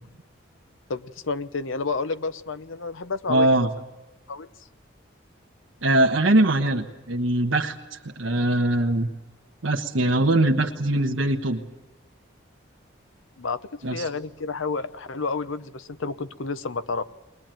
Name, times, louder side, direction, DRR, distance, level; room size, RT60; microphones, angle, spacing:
voice 1, 0.9-3.7 4.3-4.5 13.4-17.0, left 4 dB, 80° left, 13 dB, 0.8 m, -30 dB
voice 2, 3.3-3.7 5.8-9.1 9.6-11.6 13.8-14.1, right 1 dB, 85° right, 1 dB, 1.3 m, -22 dB
21.5 x 21.0 x 9.1 m, 1.1 s
head